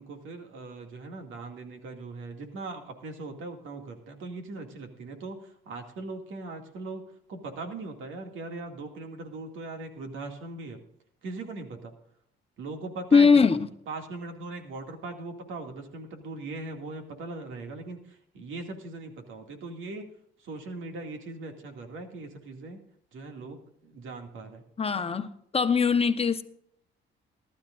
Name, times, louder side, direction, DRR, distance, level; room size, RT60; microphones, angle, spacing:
voice 1, 0.0-7.0 7.3-10.8 11.2-11.9 12.6-13.3 13.9-20.1 20.4-22.8 23.1-24.6, right 3 dB, 80° right, 2.4 m, -40 dB
voice 2, 13.1-13.7 24.8-25.3 25.5-26.4, left 5 dB, 30° left, 1.0 m, -21 dB
19.5 x 12.5 x 2.6 m
cardioid pair, 90°, 20 cm